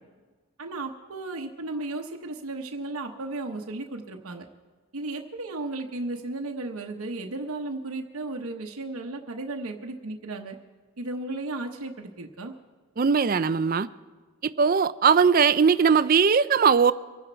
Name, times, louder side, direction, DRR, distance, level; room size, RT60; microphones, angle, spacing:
voice 1, 0.6-4.5 4.9-10.6 11.0-12.5, right 2 dB, 75° right, 2 dB, 0.9 m, -34 dB
voice 2, 13.0-13.9 14.4-16.9, right 6 dB, 40° right, 16 dB, 0.4 m, -20 dB
24.5 x 10.0 x 4.5 m, 1.4 s
head